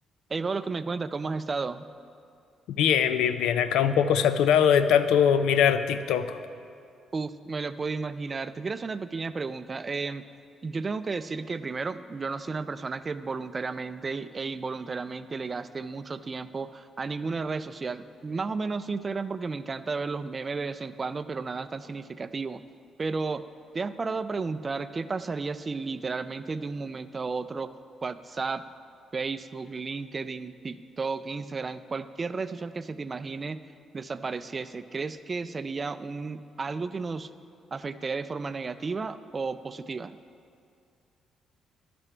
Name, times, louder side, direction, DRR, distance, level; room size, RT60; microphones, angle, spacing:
voice 1, 0.3-1.8 7.1-10.2 10.6-22.6 23.0-23.4 23.7-27.7 28.0-28.6 29.1-33.6 33.9-37.3 37.7-40.2, right 4 dB, 35° right, 13 dB, 0.3 m, -33 dB
voice 2, 2.7-6.4, left 8 dB, 90° left, 12 dB, 0.4 m, -22 dB
13.0 x 6.0 x 3.3 m, 2.4 s
cardioid pair, 90°, 0 cm